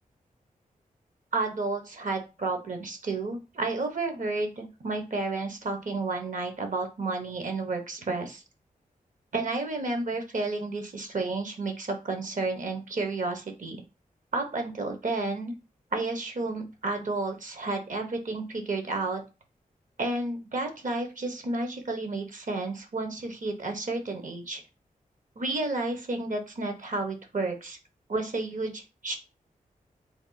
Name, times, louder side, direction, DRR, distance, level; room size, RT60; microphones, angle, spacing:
voice 1, 1.3-8.4 9.3-13.8 14.3-15.5 15.9-19.2 20.0-24.6 25.4-27.8 28.1-29.1, right 3 dB, 60° right, 5 dB, 1.0 m, -31 dB
3.4 x 2.3 x 4.0 m, 0.29 s
cardioid pair, 60°, 15 cm